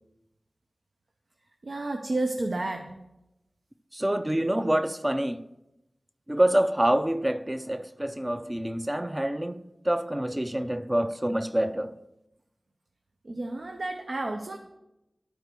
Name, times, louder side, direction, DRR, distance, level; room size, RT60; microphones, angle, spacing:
voice 1, 1.6-3.0 13.2-14.6, right 2 dB, 70° right, 0.7 m, -31 dB
voice 2, 3.9-5.4 6.3-11.9, right 1 dB, 20° right, 0.4 m, -26 dB
11.5 x 4.7 x 6.8 m
wide cardioid pair, 75°, 0 cm